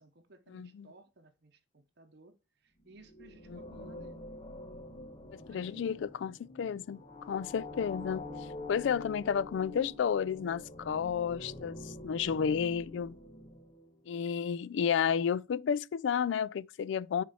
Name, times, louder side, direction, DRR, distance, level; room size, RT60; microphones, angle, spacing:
voice 1, 0.0-4.3 5.5-6.1, right 2 dB, 60° right, 0.9 m, -58 dB
voice 2, 0.5-0.9 3.5-3.6 5.3-8.3 8.7-13.1 14.1-17.2, left 7 dB, 70° left, 0.3 m, -32 dB
sound 1, 2.8-14.1, left 2 dB, 25° left, 1.1 m, -46 dB
6.2 x 4.2 x 4.2 m
head